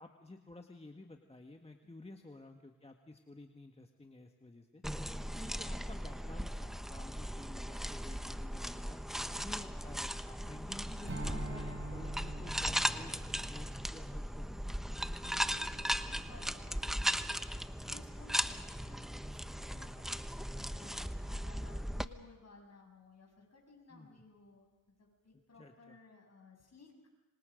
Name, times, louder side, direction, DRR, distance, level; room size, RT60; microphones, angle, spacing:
voice 1, 0.0-4.8 5.3-9.0 9.4-14.8 23.9-24.2 25.5-26.0, left 2 dB, 15° left, 4 dB, 1.6 m, -52 dB
sound 1, 4.8-22.1, equal, ahead, 1.0 m, -38 dB
voice 2, 5.1-5.4 8.1-8.4 9.2-9.5 15.2-24.7 25.0-26.9, left 3 dB, 45° left, 1 dB, 7.9 m, -58 dB
Strum, 11.0-15.7, right 2 dB, 35° right, 3.3 m, -47 dB
27.0 x 25.5 x 5.2 m, 1.2 s
cardioid pair, 75°, 36 cm